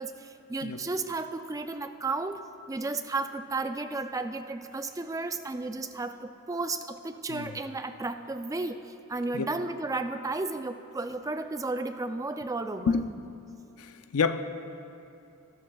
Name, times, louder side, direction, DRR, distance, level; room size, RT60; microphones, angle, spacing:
voice 1, 0.0-2.4 2.7-13.0, right 3 dB, 15° right, 8 dB, 0.4 m, -33 dB
voice 2, 13.8-14.4, left 5 dB, 85° left, 9 dB, 0.5 m, -28 dB
20.5 x 13.0 x 2.3 m, 2.6 s
head